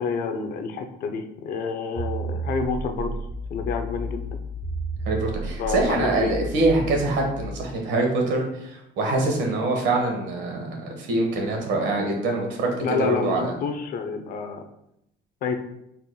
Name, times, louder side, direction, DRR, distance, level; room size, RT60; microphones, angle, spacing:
voice 1, 0.0-3.2 3.5-4.2 5.5-6.3 12.8-14.6 15.4-15.6, left 5 dB, 50° left, 6 dB, 0.5 m, -28 dB
sound 1, 2.0-7.4, right 2 dB, 40° right, 1.4 m, -32 dB
voice 2, 5.0-13.5, right 2 dB, 70° right, 1 dB, 1.3 m, -24 dB
5.0 x 4.3 x 2.2 m, 0.80 s
cardioid pair, 175°, 20 cm